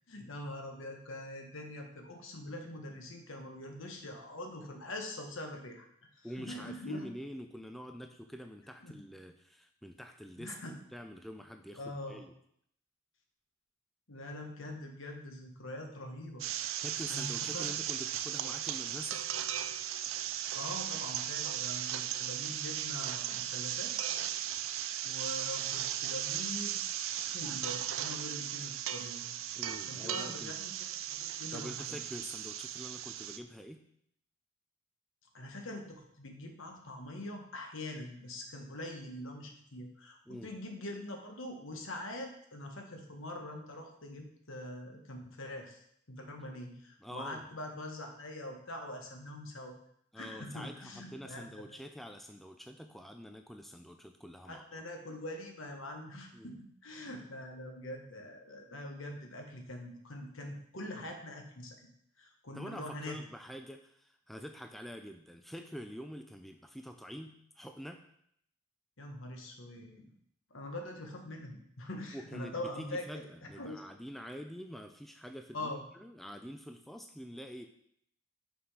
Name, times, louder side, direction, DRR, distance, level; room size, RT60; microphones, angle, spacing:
voice 1, 0.1-5.9 6.4-7.1 8.8-8.9 10.4-10.7 11.7-12.3 14.1-16.8 17.1-17.7 20.5-23.9 25.0-26.8 27.2-29.4 29.9-30.7 31.0-32.0 35.3-45.8 46.1-49.8 50.1-51.6 54.5-61.9 62.2-63.2 69.0-70.1 70.5-73.0 73.6-73.8 75.5-75.8, left 1 dB, 70° left, 3 dB, 1.3 m, -43 dB
voice 2, 6.2-12.3 16.5-19.2 29.6-30.5 31.5-33.8 40.3-40.5 47.0-47.5 50.1-54.8 56.3-56.6 62.5-68.0 72.1-77.7, equal, ahead, 5 dB, 0.3 m, -46 dB
sound 1, 16.4-33.4, right 11 dB, 75° right, 0.4 m, -37 dB
5.9 x 5.7 x 4.9 m, 0.70 s
head